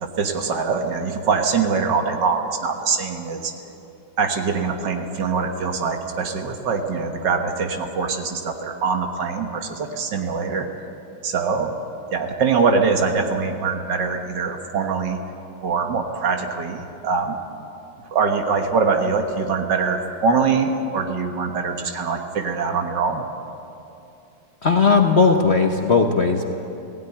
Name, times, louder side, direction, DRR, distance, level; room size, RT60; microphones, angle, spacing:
voice 1, 0.0-3.5 4.2-10.7 11.2-11.8 12.1-15.2 15.6-17.4 18.1-23.2, right 5 dB, 65° right, 5 dB, 2.0 m, -23 dB
voice 2, 24.6-26.5, left 4 dB, 40° left, 3 dB, 1.0 m, -17 dB
16.5 x 16.5 x 9.9 m, 2.8 s
omnidirectional pair, 2.1 m